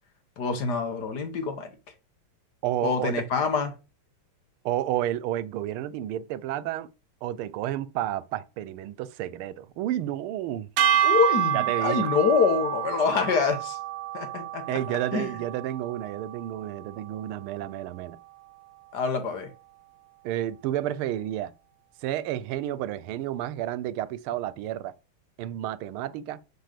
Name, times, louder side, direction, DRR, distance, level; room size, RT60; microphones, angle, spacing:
voice 1, 0.4-1.7 2.8-3.8 11.0-13.8 14.1-15.3 18.9-19.5, left 5 dB, 55° left, 1.6 m, -26 dB
voice 2, 2.6-3.2 4.6-6.9 7.2-10.7 11.5-12.1 14.7-18.2 20.2-21.5 22.0-24.9 25.4-26.4, right 12 dB, 90° right, 1.5 m, -31 dB
sound 1, 10.8-17.1, right 10 dB, 75° right, 1.4 m, -28 dB
6.8 x 4.0 x 6.5 m
omnidirectional pair, 2.3 m